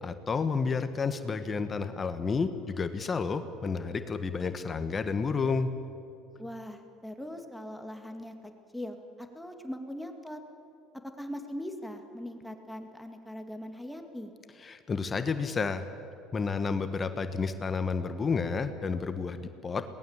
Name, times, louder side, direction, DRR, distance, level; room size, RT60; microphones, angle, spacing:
voice 1, 0.0-5.7 14.6-15.8 16.3-19.8, left 5 dB, 30° left, 9 dB, 1.4 m, -31 dB
voice 2, 6.4-8.3 8.7-10.4 11.2-14.3, equal, 5° left, 4 dB, 2.3 m, -40 dB
22.5 x 19.0 x 7.5 m, 2.6 s
hypercardioid pair, 75°, 0 cm